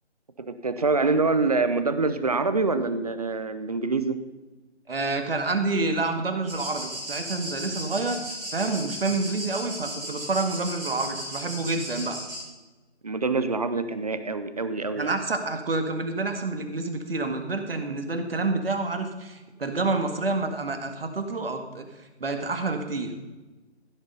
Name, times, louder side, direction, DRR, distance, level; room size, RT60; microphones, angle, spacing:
voice 1, 0.5-4.2 13.0-15.1, right 3 dB, 35° right, 11 dB, 0.7 m, -25 dB
voice 2, 4.9-8.2 8.5-12.2 15.0-21.9 22.2-23.1, right 3 dB, 55° right, 6 dB, 1.8 m, -28 dB
sound 1, 6.5-12.4, right 1 dB, 5° right, 3.9 m, -36 dB
15.5 x 6.8 x 5.4 m, 1.2 s
figure-of-eight pair, 160°, 35 cm